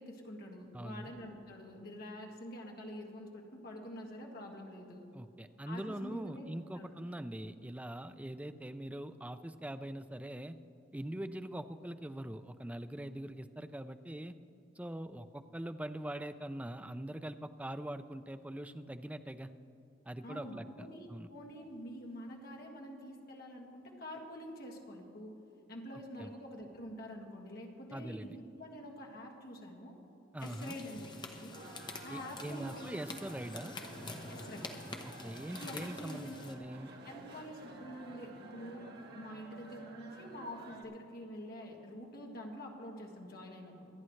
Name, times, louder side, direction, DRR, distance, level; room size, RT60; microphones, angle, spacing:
voice 1, 0.0-5.1 5.6-6.5 6.7-7.0 20.2-25.3 25.7-30.0 30.4-31.6 32.0-32.9 33.5-33.6 34.3-34.7 35.5-36.6 37.0-43.9, equal, 55° left, 0 dB, 1.7 m, -47 dB
voice 2, 0.7-1.1 5.1-10.5 10.9-14.3 14.8-19.5 20.1-21.3 26.2-26.3 27.9-28.4 30.3-30.7 32.1-33.7 35.0-36.9, right 1 dB, 5° right, 10 dB, 0.4 m, -43 dB
sound 1, 30.4-36.5, left 2 dB, 25° left, 1.0 m, -47 dB
sound 2, 31.5-40.8, right 2 dB, 55° right, 1.4 m, -52 dB
25.5 x 9.7 x 3.2 m, 2.9 s
head